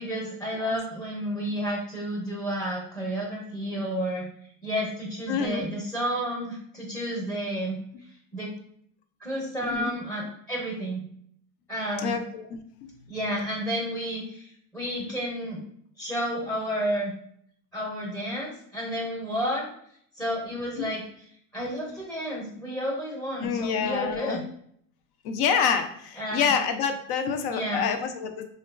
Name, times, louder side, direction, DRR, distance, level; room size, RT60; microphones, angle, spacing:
voice 1, 0.0-4.3 4.6-7.8 8.3-8.5 9.2-11.1 11.7-12.2 13.1-15.6 16.0-17.1 17.7-19.7 20.1-21.0 21.5-24.4 26.2-26.5 27.5-27.9, equal, 5° left, -3 dB, 0.6 m, -31 dB
voice 2, 5.3-5.7 9.6-9.9 12.0-12.9 20.8-20.9 23.4-24.4 25.2-28.5, left 6 dB, 65° left, 7 dB, 0.5 m, -27 dB
2.8 x 2.3 x 2.4 m, 0.65 s
cardioid pair, 115°, 40 cm